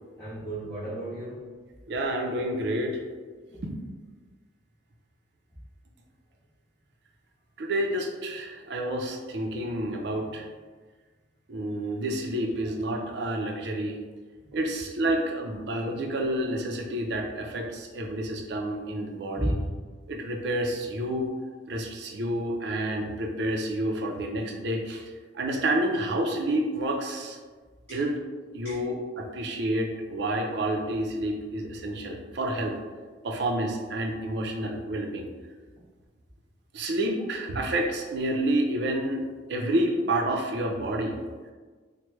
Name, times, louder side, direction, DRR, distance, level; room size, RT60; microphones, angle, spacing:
voice 1, 0.1-1.5 3.5-3.6 12.6-12.7 14.5-14.6 19.4-19.6 27.9-28.0 28.6-28.8, equal, 15° left, -16 dB, 1.3 m, -33 dB
voice 2, 1.9-3.0 3.6-3.7 7.6-10.5 11.5-14.0 14.5-19.5 20.1-21.3 21.7-27.4 27.9-28.1 28.5-32.7 33.2-35.3 36.7-39.2 39.5-41.2, right 1 dB, 65° right, 1 dB, 0.5 m, -29 dB
4.5 x 2.1 x 3.1 m, 1.4 s
head